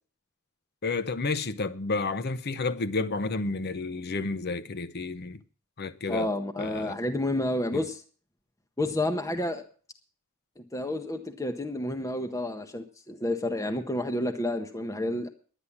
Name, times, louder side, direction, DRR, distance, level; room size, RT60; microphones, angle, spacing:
voice 1, 0.8-5.4 5.8-6.3 6.6-7.0 7.7-7.8, left 3 dB, 50° left, 0.7 m, -31 dB
voice 2, 6.1-8.0 8.8-9.6 10.6-15.3, left 1 dB, 15° left, 0.8 m, -30 dB
11.0 x 10.0 x 7.1 m
head